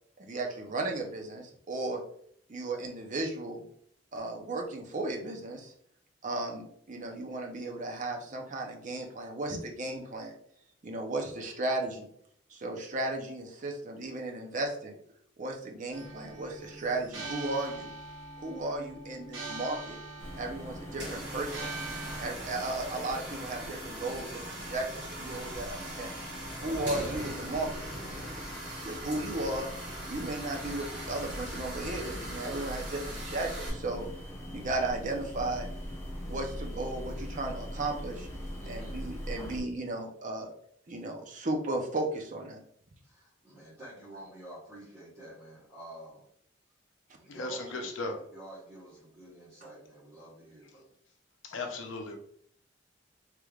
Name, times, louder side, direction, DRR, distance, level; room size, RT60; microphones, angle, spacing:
voice 1, 0.2-2.0 2.5-3.6 4.1-5.7 6.2-10.3 10.8-12.1 12.6-14.9 15.4-17.9 18.4-20.0 20.4-21.6 22.2-24.4 24.7-26.1 26.6-27.9 28.8-29.7 30.1-34.0 34.5-35.7 36.3-38.3 38.7-40.5 40.9-42.6, right 2 dB, 40° right, 1 dB, 0.6 m, -35 dB
sound 1, 15.9-22.3, right 3 dB, 85° right, 1.0 m, -42 dB
sound 2, 20.2-39.6, equal, 15° left, 0.9 m, -42 dB
sound 3, 20.9-33.7, right 1 dB, 60° right, 1.4 m, -41 dB
voice 2, 38.6-39.0 43.0-46.2 47.2-50.9, right 1 dB, 15° right, -12 dB, 1.1 m, -49 dB
voice 3, 47.3-48.1 51.4-52.2, left 2 dB, 75° left, 4 dB, 0.6 m, -36 dB
3.2 x 3.2 x 2.3 m, 0.65 s
head